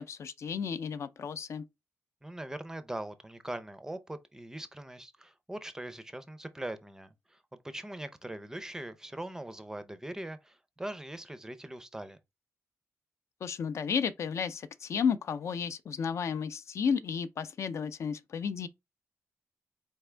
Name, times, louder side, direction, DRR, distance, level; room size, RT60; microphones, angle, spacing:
voice 1, 0.0-1.6 13.4-18.7, left 6 dB, 60° left, 0.4 m, -32 dB
voice 2, 2.2-12.2, right 1 dB, 10° right, 0.5 m, -41 dB
4.2 x 3.5 x 3.2 m
wide cardioid pair, 140°, 5 cm